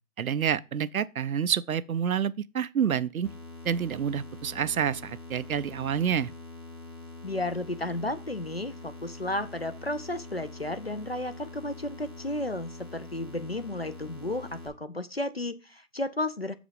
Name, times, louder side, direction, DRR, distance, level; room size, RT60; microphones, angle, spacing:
voice 1, 0.2-3.3 3.6-6.3, right 8 dB, 65° right, 0.5 m, -28 dB
sound 1, 3.2-14.7, left 3 dB, 15° left, 0.9 m, -44 dB
voice 2, 7.2-16.5, left 1 dB, 45° left, 0.4 m, -33 dB
7.0 x 5.0 x 5.0 m
figure-of-eight pair, 165°, 46 cm